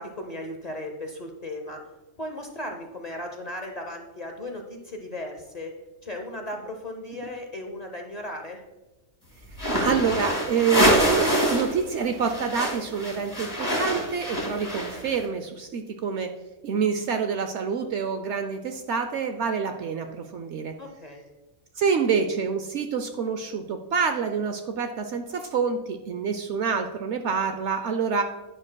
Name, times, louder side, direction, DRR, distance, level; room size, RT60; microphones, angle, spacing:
voice 1, 0.0-1.8 2.2-5.7 6.0-8.6 20.8-21.2, left 1 dB, 35° left, 3 dB, 0.8 m, -36 dB
sound 1, 9.5-11.7 12.0-15.2, equal, 15° left, 1.7 m, -25 dB
voice 2, 9.8-16.3 16.6-20.7 21.8-28.2, right 6 dB, 65° right, 7 dB, 0.8 m, -27 dB
10.5 x 9.7 x 2.2 m, 1.1 s
omnidirectional pair, 1.5 m